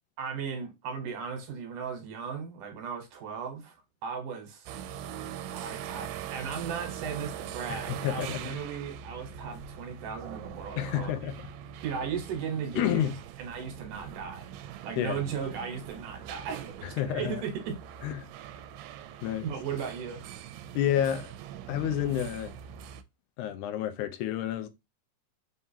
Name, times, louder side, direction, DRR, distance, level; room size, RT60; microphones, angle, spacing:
voice 1, 0.2-3.8 4.0-4.8 5.5-11.1 11.8-13.1 13.4-14.5 14.8-17.8 19.4-20.2, right 6 dB, 70° right, 2.6 m, -36 dB
sound 1, 4.7-23.0, right 9 dB, 90° right, 2.3 m, -42 dB
voice 2, 7.7-8.6 10.8-11.4 12.8-13.1 15.0-15.2 17.0-17.4 18.0-18.3 19.2-19.5 20.8-21.3 21.7-22.5 23.4-24.7, left 11 dB, 80° left, 1.8 m, -29 dB
5.3 x 3.6 x 2.7 m
omnidirectional pair, 4.0 m